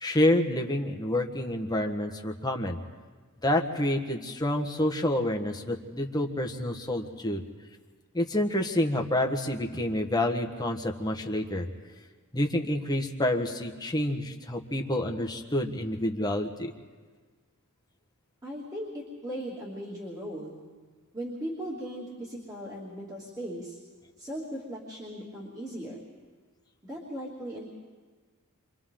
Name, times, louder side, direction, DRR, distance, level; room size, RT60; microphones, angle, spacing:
voice 1, 0.0-2.8 3.4-7.4 8.1-11.7 12.3-16.7, left 1 dB, 20° left, 3 dB, 1.4 m, -28 dB
voice 2, 18.4-20.6 21.1-23.8 24.2-26.0 26.8-27.7, equal, 20° right, -6 dB, 2.9 m, -38 dB
29.5 x 25.0 x 3.9 m, 1.5 s
head